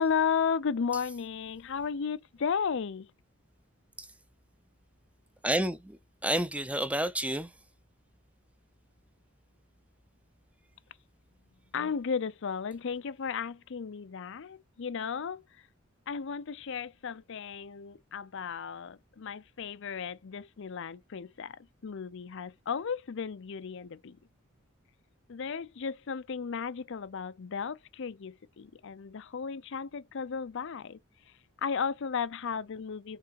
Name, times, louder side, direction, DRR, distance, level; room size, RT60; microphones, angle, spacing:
voice 1, 0.0-3.1 11.7-15.7 16.1-24.2 25.3-31.0 31.6-33.2, left 6 dB, 65° left, 0.5 m, -34 dB
voice 2, 5.4-7.5, right 1 dB, 5° right, 0.6 m, -30 dB
5.8 x 3.8 x 4.7 m
head